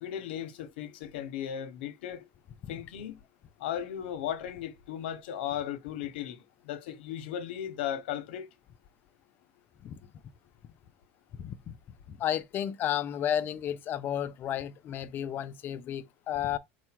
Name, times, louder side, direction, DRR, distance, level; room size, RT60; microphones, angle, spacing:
voice 1, 0.0-2.3 2.7-3.2 3.6-8.5, left 10 dB, 85° left, 0.9 m, -36 dB
voice 2, 11.4-11.7 12.1-16.6, left 10 dB, 40° left, 0.4 m, -32 dB
4.7 x 2.2 x 4.4 m
supercardioid pair, 135°, 6 cm